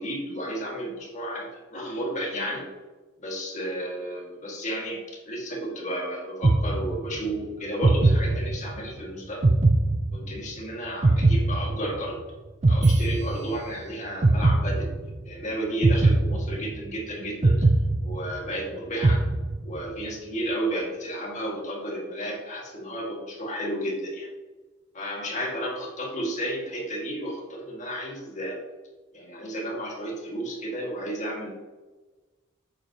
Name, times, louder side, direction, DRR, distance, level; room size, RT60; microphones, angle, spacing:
voice 1, 0.0-2.7 3.2-9.5 10.1-12.2 12.7-14.9 15.2-17.7 18.0-19.2 19.6-24.3 24.9-28.6 29.1-31.5, right 1 dB, 35° left, -2 dB, 2.1 m, -32 dB
sound 1, 6.4-7.3 7.8-8.9 9.4-10.6 11.0-12.2 12.6-13.8 14.2-15.3 15.8-17.0 17.4-18.6 19.0-19.9, right 2 dB, 30° right, 0.4 m, -21 dB
8.1 x 7.6 x 3.0 m, 1.2 s
head